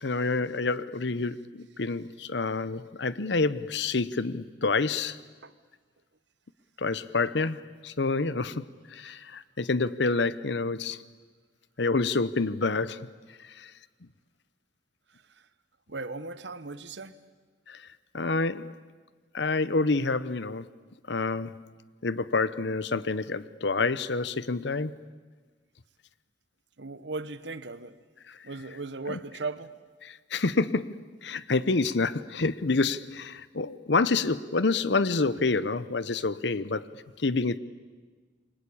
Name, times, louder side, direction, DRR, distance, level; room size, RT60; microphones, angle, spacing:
voice 1, 0.0-5.2 6.8-8.6 8.9-11.0 11.8-13.1 13.5-13.7 17.7-17.8 18.1-18.7 19.3-20.7 21.1-21.6 22.0-25.0 28.3-28.4 29.1-29.2 30.0-36.9 37.2-37.6, left 3 dB, 70° left, 0.9 m, -28 dB
voice 2, 15.9-17.1 26.8-27.9 28.4-29.7, right 3 dB, 70° right, 1.2 m, -37 dB
28.5 x 23.5 x 8.7 m
head